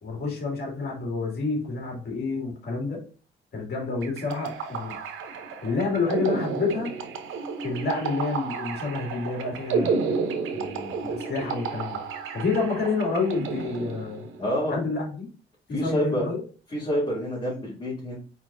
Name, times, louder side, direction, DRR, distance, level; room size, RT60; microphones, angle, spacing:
voice 1, 0.0-3.0 3.5-5.0 5.6-6.9 7.6-10.2 10.5-12.0 12.3-14.3 14.7-15.3 15.7-16.4, left 4 dB, 55° left, -1 dB, 2.3 m, -29 dB
sound 1, 4.0-14.5, right 5 dB, 85° right, 0.7 m, -31 dB
voice 2, 14.4-14.8 15.7-16.2 16.7-18.2, equal, 30° left, -9 dB, 2.5 m, -27 dB
4.5 x 4.0 x 2.5 m, 0.38 s
cardioid pair, 90°, 20 cm